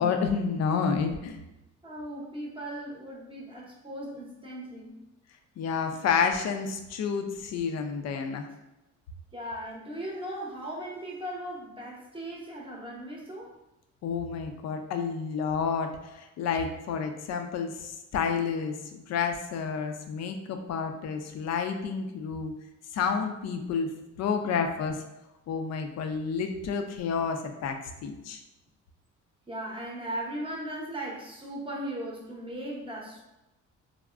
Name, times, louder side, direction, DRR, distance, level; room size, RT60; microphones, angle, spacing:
voice 1, 0.0-1.4 5.6-8.5 14.0-22.5 22.9-23.9 24.2-25.0 25.5-28.4, left 6 dB, 60° left, 6 dB, 0.4 m, -30 dB
voice 2, 1.8-5.0 9.3-13.5 29.5-33.2, right 1 dB, 20° right, -2 dB, 0.7 m, -38 dB
3.5 x 2.0 x 2.4 m, 0.95 s
cardioid pair, 90°, 30 cm